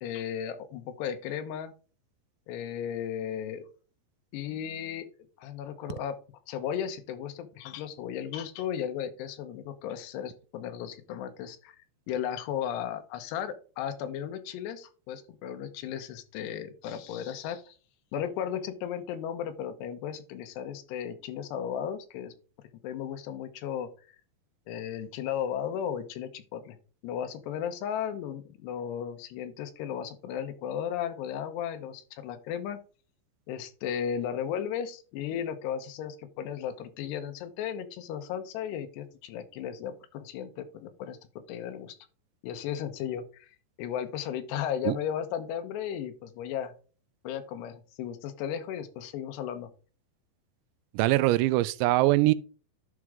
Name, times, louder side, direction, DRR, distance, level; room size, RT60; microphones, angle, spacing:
voice 1, 0.0-1.7 2.5-3.7 4.3-5.1 5.4-6.2 6.5-17.8 18.1-22.3 22.8-23.9 24.7-26.8 27.0-32.8 33.5-41.2 41.5-42.0 42.4-46.7 47.2-49.7, left 9 dB, 80° left, 3.0 m, -35 dB
voice 2, 50.9-52.3, right 18 dB, 90° right, 2.8 m, -22 dB
11.0 x 4.8 x 3.7 m
omnidirectional pair, 5.0 m